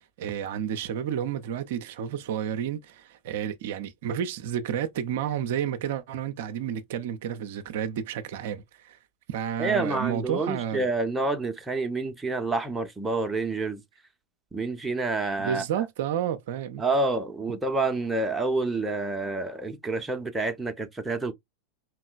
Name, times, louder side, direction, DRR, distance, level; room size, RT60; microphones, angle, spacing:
voice 1, 0.0-9.0 9.3-10.9 15.4-16.8, right 9 dB, 55° right, 0.4 m, -31 dB
voice 2, 9.6-13.8 14.5-15.6 16.8-21.3, right 3 dB, 10° right, 0.6 m, -28 dB
4.5 x 3.0 x 2.3 m
figure-of-eight pair, 90°, 0 cm